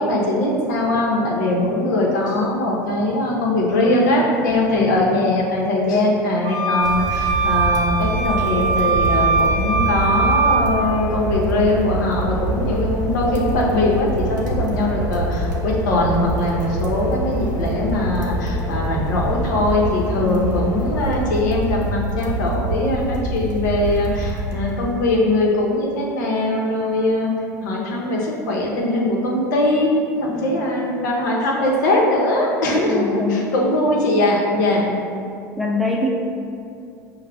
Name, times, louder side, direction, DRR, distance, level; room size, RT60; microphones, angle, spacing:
voice 1, 0.0-27.3 27.6-34.8, left 1 dB, 75° left, -2 dB, 0.8 m, -21 dB
voice 2, 4.5-5.0 14.6-14.9 20.2-20.6 30.3-30.7 32.7-33.5 34.7-35.1 35.6-36.1, left 3 dB, ahead, -3 dB, 0.6 m, -25 dB
sound 1, 6.4-10.6, right 4 dB, 45° right, 0.7 m, -21 dB
sound 2, 6.8-25.2, right 1 dB, 85° right, 0.6 m, -26 dB
sound 3, 8.0-21.2, left 1 dB, 40° left, 0.9 m, -33 dB
5.5 x 2.1 x 3.4 m, 2.5 s
hypercardioid pair, 85°, 10 cm